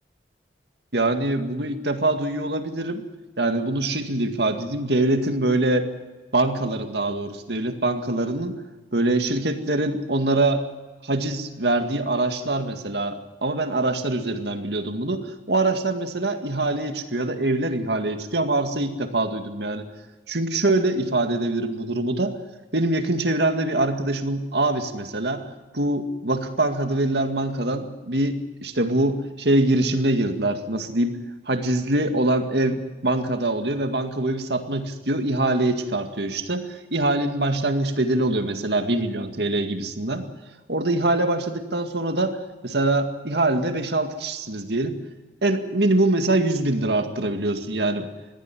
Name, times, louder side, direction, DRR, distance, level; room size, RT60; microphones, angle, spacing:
voice 1, 0.9-3.0 3.4-5.9 6.3-8.6 8.9-10.6 11.0-19.9 20.3-22.3 22.7-25.4 25.7-31.2 31.5-40.3 40.7-44.9 45.4-48.1, right 2 dB, 70° right, 6 dB, 2.0 m, -24 dB
21.0 x 15.0 x 9.9 m, 1.2 s
head